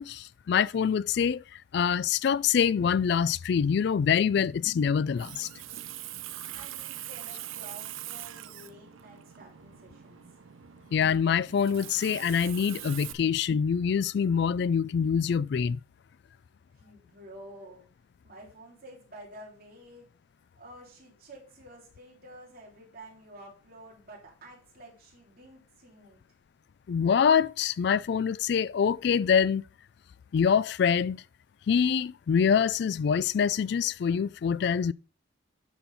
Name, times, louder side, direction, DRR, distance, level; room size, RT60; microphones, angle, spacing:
voice 1, 0.0-1.4 1.7-5.5 10.9-15.8 26.9-29.6 30.3-31.2 31.7-34.9, left 7 dB, 55° left, 0.3 m, -25 dB
Water tap faucet, 5.0-13.1, right 13 dB, 85° right, 0.5 m, -42 dB
voice 2, 6.3-10.2 16.7-17.9 18.2-20.0 20.6-26.2, right 1 dB, 50° right, 3.3 m, -50 dB
11.5 x 4.4 x 4.0 m
head